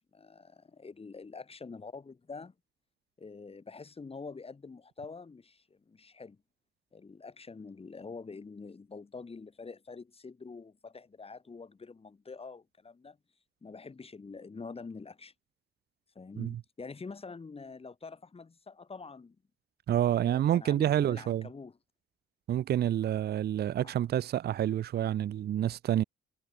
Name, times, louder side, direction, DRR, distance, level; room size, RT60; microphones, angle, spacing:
voice 1, 0.0-2.5 3.2-6.4 6.9-13.2 13.6-15.3 16.1-19.4 20.0-21.8 23.8-23.9, left 4 dB, 30° left, 4.6 m, -46 dB
voice 2, 19.9-21.5 22.5-26.0, right 11 dB, 55° right, 0.6 m, -28 dB
cardioid pair, 90°, 20 cm